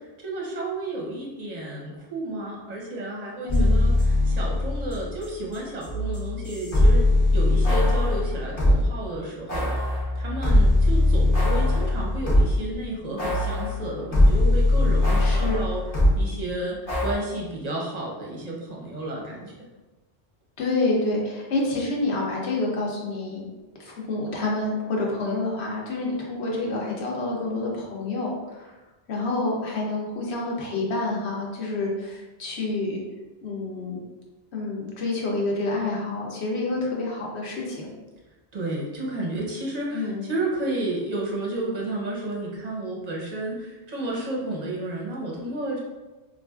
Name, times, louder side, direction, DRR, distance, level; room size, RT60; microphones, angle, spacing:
voice 1, 0.2-7.0 7.3-15.8 16.1-19.5 38.5-45.8, right 2 dB, 45° right, -3 dB, 0.7 m, -32 dB
voice 2, 3.4-3.8 15.2-15.6 20.6-23.5 23.8-28.7 29.1-33.0 33.4-34.0 34.5-37.9 39.9-40.3, left 2 dB, 70° left, -2 dB, 1.0 m, -28 dB
sound 1, 3.5-8.9 9.5-12.7 13.2-16.2 16.9-17.1, left 1 dB, 40° left, 0.8 m, -21 dB
4.1 x 2.4 x 2.3 m, 1.1 s
omnidirectional pair, 1.2 m